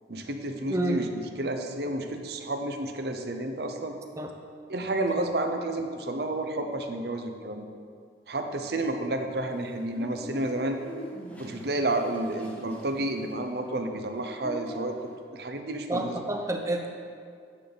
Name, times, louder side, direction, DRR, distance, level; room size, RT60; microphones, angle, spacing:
voice 1, 0.1-1.1 1.4-4.0 4.7-7.6 8.3-10.8 11.4-15.0 15.3-16.2, right 1 dB, 60° right, 5 dB, 0.8 m, -30 dB
sound 1, 9.4-15.2, right 1 dB, 10° left, 1.0 m, -43 dB
voice 2, 15.9-16.9, right 1 dB, 15° right, 3 dB, 0.7 m, -28 dB
10.5 x 7.7 x 4.0 m, 2.2 s
head